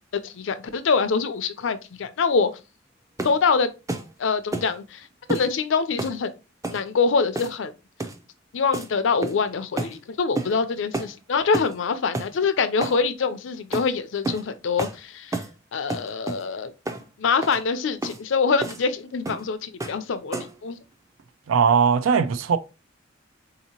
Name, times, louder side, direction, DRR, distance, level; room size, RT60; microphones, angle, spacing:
voice 1, 0.2-2.5 3.2-3.7 4.2-6.3 6.7-7.7 8.5-15.4 15.7-16.7 17.2-20.8, left 5 dB, 65° left, 0.5 m, -24 dB
sound 1, 3.2-3.4 3.9-4.1 4.5-4.7 5.3-5.5 6.0-6.2 6.6-6.8 7.3-7.7 8.0-8.2 8.7-8.9 9.2-9.5 9.8-10.0 10.4-10.5 10.9-11.1 11.5-11.8 12.1-12.3 12.8-13.0 13.7-13.9 14.2-14.5 14.8-15.0 15.3-15.5 15.9-16.4 16.9-17.0 17.4-17.6 18.0-18.2 18.6-18.8 19.3-19.5 19.8-20.0 20.3-20.6, right 2 dB, 15° right, 0.5 m, -30 dB
voice 2, 21.5-22.6, right 6 dB, 85° right, 0.4 m, -19 dB
4.0 x 2.8 x 2.8 m
head